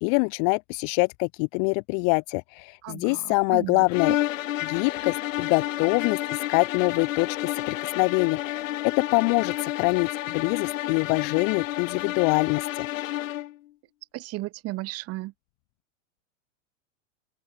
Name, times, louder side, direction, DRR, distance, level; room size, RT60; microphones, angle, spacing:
voice 1, 0.0-4.2 4.6-12.9, left 40 dB or more, 40° left, 0.7 m, -25 dB
voice 2, 2.8-4.2 14.1-15.3, right 19 dB, 35° right, 7.7 m, -35 dB
sound 1, 3.9-13.6, left 14 dB, 75° left, 2.9 m, -30 dB
supercardioid pair, 150°, 39 cm